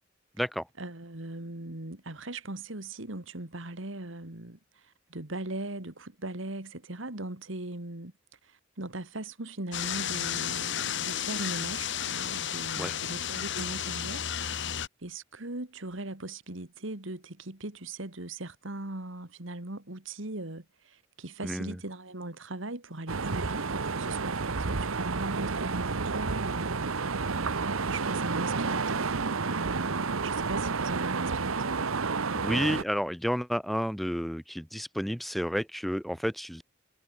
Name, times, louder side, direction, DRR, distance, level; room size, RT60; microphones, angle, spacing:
voice 1, 0.8-4.6 5.1-8.1 8.4-14.7 15.0-27.1 27.6-31.8, right 2 dB, 65° right, 2.3 m, -39 dB
sound 1, 9.7-14.9, left 9 dB, 60° left, 1.6 m, -32 dB
voice 2, 21.4-21.8 32.3-36.6, equal, ahead, 2.2 m, -31 dB
sound 2, 23.1-32.8, right 4 dB, 80° right, 1.1 m, -30 dB
head